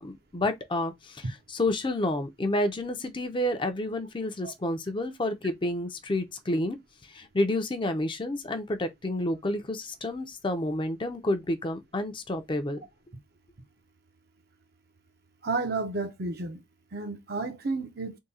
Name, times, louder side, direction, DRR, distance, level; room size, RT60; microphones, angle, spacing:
voice 1, 0.0-6.8 7.1-12.8, left 1 dB, 25° left, 0.6 m, -30 dB
voice 2, 15.4-16.6 16.9-18.2, right 3 dB, 60° right, 0.8 m, -31 dB
3.6 x 2.2 x 4.1 m
head